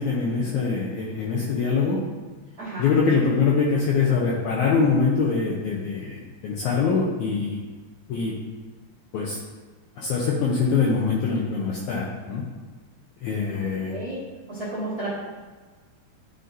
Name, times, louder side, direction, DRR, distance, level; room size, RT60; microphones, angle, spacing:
voice 1, 0.0-2.0 2.8-7.6 8.1-8.3 9.1-9.4 10.0-12.4 13.2-13.9, left 5 dB, 80° left, -4 dB, 1.7 m, -23 dB
voice 2, 13.5-14.2 14.5-15.1, right 2 dB, 50° right, -9 dB, 1.1 m, -33 dB
11.0 x 3.9 x 2.6 m, 1.3 s
omnidirectional pair, 4.1 m